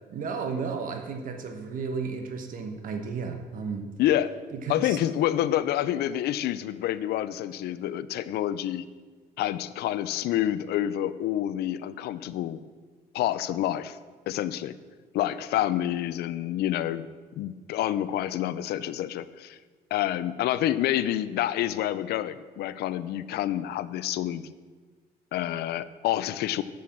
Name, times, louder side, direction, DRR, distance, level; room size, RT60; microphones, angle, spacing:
voice 1, 0.1-3.9 4.5-5.0, right 5 dB, 55° right, 6 dB, 1.1 m, -33 dB
voice 2, 4.0-4.3 4.7-8.8 9.4-12.6 13.1-14.0 14.3-14.7 15.1-17.1 17.4-19.6 19.9-24.4 25.3-26.6, left 12 dB, 75° left, 15 dB, 0.5 m, -28 dB
7.8 x 7.5 x 7.2 m, 1.4 s
cardioid pair, 110°, 17 cm